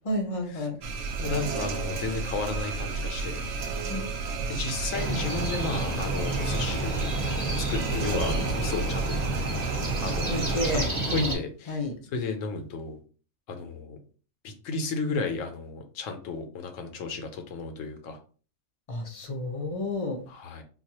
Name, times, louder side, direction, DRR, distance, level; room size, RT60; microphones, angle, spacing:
voice 1, 0.0-0.8 3.9-4.1 10.3-11.4 11.7-11.9 18.9-20.2, left 1 dB, 45° left, 3 dB, 0.4 m, -31 dB
ambient noise (radiator), 0.8-10.9, right 4 dB, 65° right, 0.9 m, -32 dB
voice 2, 1.2-3.4 4.5-7.1 7.6-9.1 10.0-10.8 11.1-11.8 12.1-13.0 13.5-14.0 14.4-18.2 20.3-20.6, left 4 dB, 70° left, 5 dB, 1.0 m, -33 dB
sound 1, 4.9-11.3, right 1 dB, 10° right, 1.1 m, -30 dB
3.9 x 2.3 x 2.9 m, 0.39 s
omnidirectional pair, 1.4 m